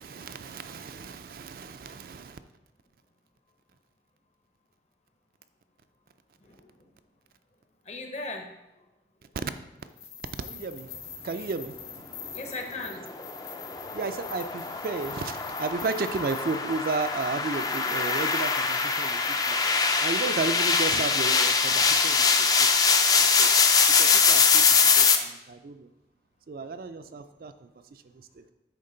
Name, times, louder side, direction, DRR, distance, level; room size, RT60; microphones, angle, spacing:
voice 1, 0.0-2.4 10.4-12.4 13.7-19.6 20.0-22.7 23.2-23.5 24.0-24.6 25.0-25.9 26.5-28.0 28.3-28.4, right 4 dB, 55° right, 9 dB, 0.4 m, -34 dB
voice 2, 6.4-6.9 7.8-8.9 12.2-13.0 13.7-13.8, left 2 dB, 40° left, 5 dB, 0.7 m, -39 dB
sound 1, 9.9-19.7, left 7 dB, 65° left, 1.1 m, -43 dB
sound 2, 13.1-25.2, left 5 dB, 20° left, 0.4 m, -23 dB
9.6 x 3.7 x 3.8 m, 0.93 s
head